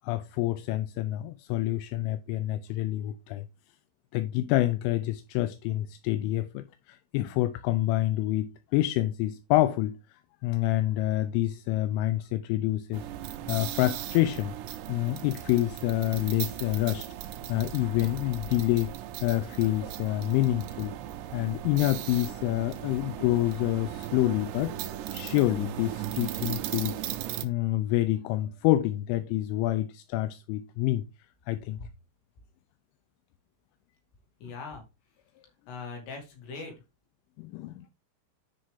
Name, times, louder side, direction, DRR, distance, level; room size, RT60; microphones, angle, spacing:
voice 1, 0.0-3.4 4.1-13.1 13.5-14.5 14.9-17.1 17.5-18.9 19.2-20.9 21.3-24.7 25.1-27.0 27.4-31.0 31.5-31.8 37.4-37.9, left 15 dB, 85° left, 3.0 m, -27 dB
sound 1, 12.9-27.5, right 12 dB, 80° right, 2.6 m, -37 dB
voice 2, 34.4-34.8 35.7-36.7, left 4 dB, 60° left, 4.4 m, -40 dB
10.0 x 5.3 x 3.5 m
omnidirectional pair, 5.8 m